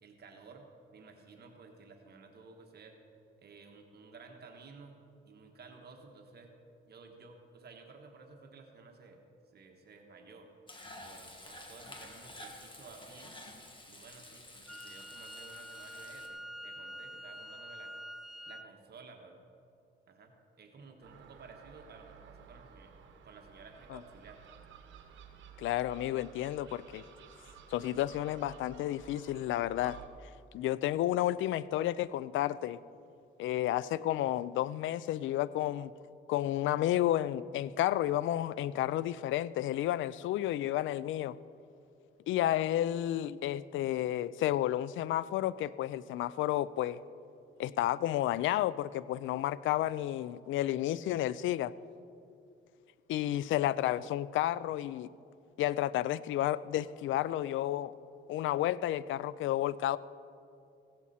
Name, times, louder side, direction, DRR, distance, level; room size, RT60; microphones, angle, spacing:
voice 1, 0.0-3.0 3.4-5.0 5.3-6.5 6.9-9.2 9.5-10.5 11.0-13.3 13.9-17.9 18.5-19.4 20.1-22.9 23.2-24.4, right 4 dB, 55° right, 3 dB, 1.4 m, -54 dB
Frying (food), 10.7-16.3, left 1 dB, 25° left, 1.8 m, -50 dB
Wind instrument woodwind instrument, 14.7-18.7, equal, ahead, 0.5 m, -46 dB
Gull seagull, 21.0-30.1, right 7 dB, 75° right, 1.2 m, -54 dB
voice 2, 25.6-27.0 27.7-30.0 30.5-32.8 33.4-35.9 36.3-41.4 42.3-47.0 47.6-51.7 53.1-55.1 55.6-58.0 58.3-60.0, left 13 dB, 75° left, 19 dB, 0.4 m, -31 dB
16.0 x 12.0 x 4.3 m, 2.6 s
cardioid pair, 90°, 20 cm